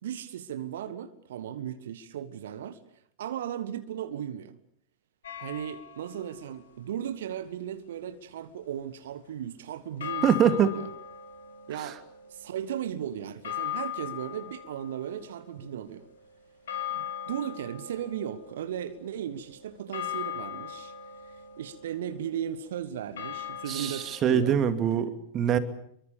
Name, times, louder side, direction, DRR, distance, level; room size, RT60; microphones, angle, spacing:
voice 1, 0.0-2.8 3.2-4.6 5.4-10.9 11.7-12.0 12.3-16.1 16.9-20.9 21.2-24.5, right 9 dB, 60° right, 1.4 m, -36 dB
sound 1, 5.2-6.3 10.0-24.2, left 9 dB, 65° left, 3.9 m, -40 dB
voice 2, 10.2-10.7 11.7-11.9 23.7-25.6, right 8 dB, 30° right, 2.6 m, -24 dB
27.0 x 23.5 x 7.1 m
figure-of-eight pair, 90°, 0 cm